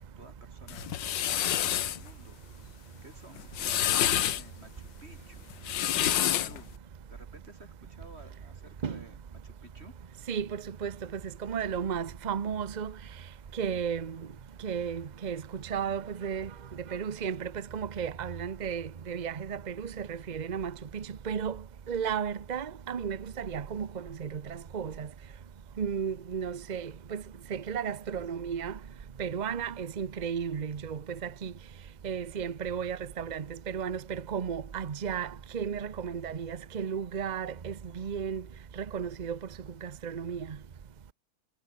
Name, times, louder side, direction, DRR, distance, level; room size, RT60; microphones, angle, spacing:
voice 1, 0.0-2.4 2.8-6.7 7.1-9.9, right 2 dB, 30° right, 4.9 m, -53 dB
sound 1, 0.7-2.0 3.4-4.4 5.5-6.6, left 11 dB, 75° left, 1.7 m, -28 dB
voice 2, 11.4-12.9 13.6-14.2 14.6-15.4 15.7-16.5 16.9-21.6 21.9-23.9 24.2-25.1 25.8-27.2 27.5-28.7 29.2-31.0 31.4-31.5 32.0-35.3 35.5-38.4 38.9-39.4 39.8-40.5, right 7 dB, 65° right, 0.4 m, -34 dB
omnidirectional pair, 2.0 m